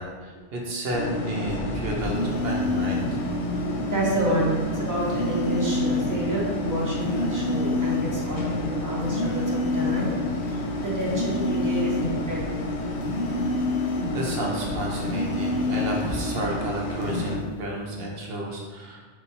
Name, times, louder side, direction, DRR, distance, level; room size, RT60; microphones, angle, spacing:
voice 1, 0.0-3.2 14.1-19.0, right 1 dB, 65° right, -1 dB, 1.0 m, -31 dB
sound 1, 0.9-17.4, left 1 dB, 80° left, 0.9 m, -30 dB
sound 2, 2.0-3.2 5.0-6.2 7.0-8.2 9.0-10.2 11.0-12.2 13.0-14.2 15.0-16.2 17.0-17.3, left 3 dB, 60° left, 0.6 m, -28 dB
voice 2, 3.9-10.2 10.5-12.7, right 1 dB, 20° right, -5 dB, 0.9 m, -29 dB
4.4 x 2.4 x 4.0 m, 1.4 s
omnidirectional pair, 1.1 m